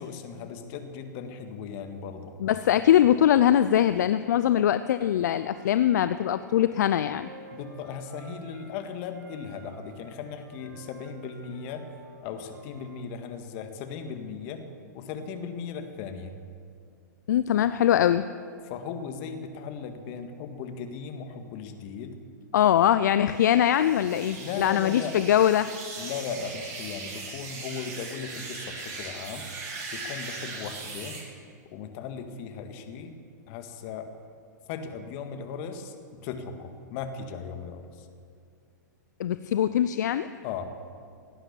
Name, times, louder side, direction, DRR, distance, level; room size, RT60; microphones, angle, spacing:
voice 1, 0.0-2.3 2.7-2.8 7.5-11.9 12.2-14.7 14.9-16.3 18.7-22.1 24.4-25.1 26.0-29.5 29.9-31.2 31.7-33.1 33.5-34.1 34.7-38.1 40.4-40.7, left 6 dB, 45° left, 7 dB, 1.7 m, -37 dB
voice 2, 2.4-7.3 17.3-18.3 22.5-25.7 39.2-40.3, left 10 dB, 65° left, 13 dB, 0.5 m, -22 dB
Wind instrument woodwind instrument, 5.1-8.8 9.1-13.0, right 2 dB, 75° right, 4.2 m, -51 dB
sound 1, 23.3-31.2, right 3 dB, 40° right, 4.8 m, -39 dB
17.5 x 9.9 x 7.0 m, 2.2 s
hypercardioid pair, 110°, 10 cm